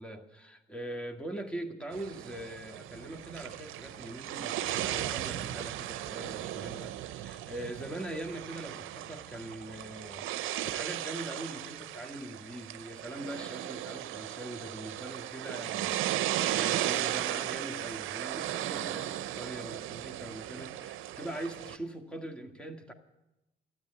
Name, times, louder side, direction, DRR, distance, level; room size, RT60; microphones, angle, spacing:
voice 1, 0.0-22.9, right 1 dB, 5° left, 4 dB, 1.9 m, -42 dB
sound 1, 1.9-21.8, right 13 dB, 85° right, 0.6 m, -36 dB
12.5 x 9.3 x 9.8 m, 0.95 s
cardioid pair, 90°, 20 cm